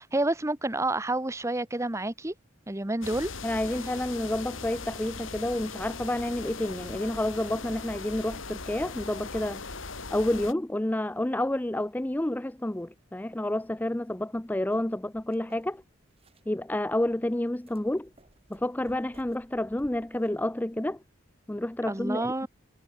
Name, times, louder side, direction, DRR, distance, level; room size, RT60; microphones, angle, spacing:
voice 1, 0.0-2.3 2.7-3.3 21.9-22.5, right 2 dB, 15° right, 0.9 m, -29 dB
sound 1, 3.0-10.5, left 4 dB, 80° left, 3.9 m, -39 dB
voice 2, 3.4-9.6 10.1-15.8 16.5-18.1 18.5-21.0 21.5-22.5, left 1 dB, 10° left, 0.4 m, -29 dB
sound 2, 14.3-20.8, right 1 dB, 30° right, 6.1 m, -61 dB
head